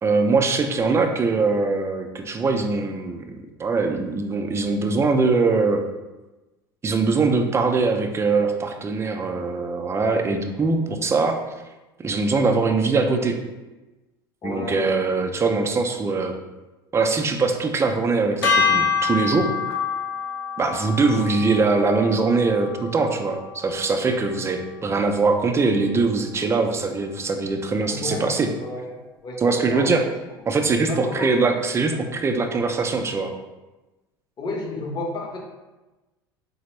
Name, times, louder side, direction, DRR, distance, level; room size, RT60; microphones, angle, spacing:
voice 1, 0.0-5.8 6.8-11.4 12.0-13.4 14.4-16.4 16.9-19.5 20.6-28.5 29.4-30.0 30.5-33.3, right 4 dB, 20° right, 5 dB, 0.4 m, -22 dB
voice 2, 14.4-14.9 27.9-29.0 29.2-29.9 30.9-31.3 34.4-35.4, left 2 dB, 35° left, 0 dB, 0.8 m, -31 dB
sound 1, 18.4-24.8, left 6 dB, 80° left, 0.6 m, -27 dB
4.1 x 2.0 x 3.0 m, 1.1 s
hypercardioid pair, 70°, 12 cm